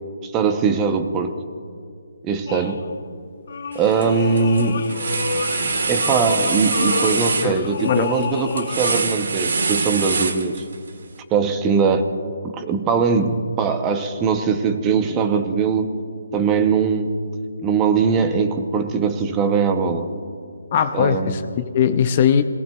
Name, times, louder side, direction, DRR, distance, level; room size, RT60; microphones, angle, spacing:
voice 1, 0.2-1.4 2.2-2.8 3.7-4.8 5.9-10.6 11.3-12.1 12.5-15.9 16.3-17.1 17.6-20.1 20.9-21.4, right 5 dB, 15° right, 8 dB, 0.7 m, -21 dB
sound 1, 2.5-3.0 3.5-9.0, left 5 dB, 50° left, 0.9 m, -29 dB
sound 2, 3.7-4.1 4.4-10.9, right 4 dB, 70° right, 1.4 m, -24 dB
voice 2, 7.4-8.1 20.7-22.4, left 8 dB, 30° left, 10 dB, 0.5 m, -20 dB
28.5 x 18.5 x 2.3 m, 2.3 s
hypercardioid pair, 170°, 0 cm